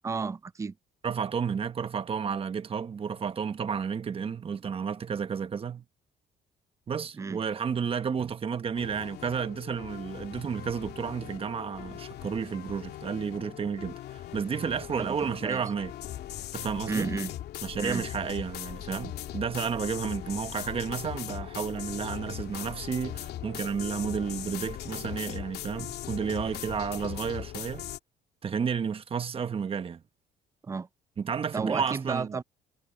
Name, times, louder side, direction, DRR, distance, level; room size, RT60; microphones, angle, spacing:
voice 1, 0.0-0.7 7.1-7.4 15.0-15.2 15.4-15.6 16.9-17.3 17.8-18.0 30.6-30.9 31.5-32.4, right 4 dB, 20° right, 0.4 m, -32 dB
voice 2, 1.0-5.8 6.9-15.9 16.5-17.1 17.6-27.9 28.4-30.0 31.2-32.4, right 6 dB, 35° right, 1.3 m, -32 dB
sound 1, 8.7-28.0, left 12 dB, 70° left, 2.7 m, -39 dB
cardioid pair, 110°, 17 cm